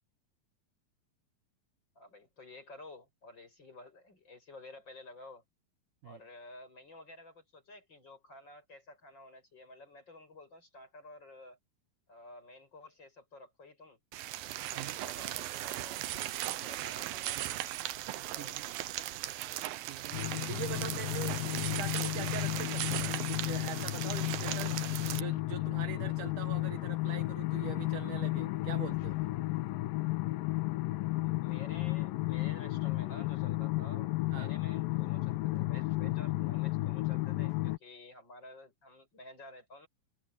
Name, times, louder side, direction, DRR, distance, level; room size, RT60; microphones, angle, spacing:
voice 1, 1.9-5.4 6.0-11.6 12.1-14.0 14.5-17.5 18.3-18.7 31.2-39.9, left 2 dB, 30° left, 8.6 m, -52 dB
sound 1, 14.1-25.2, right 14 dB, 90° right, 2.7 m, -38 dB
voice 2, 18.3-18.7 19.9-20.2 20.5-24.8 25.1-29.2 34.3-34.5, right 10 dB, 70° right, 2.5 m, -43 dB
sound 2, 20.1-37.8, left 20 dB, 80° left, 2.5 m, -33 dB
omnidirectional pair, 4.0 m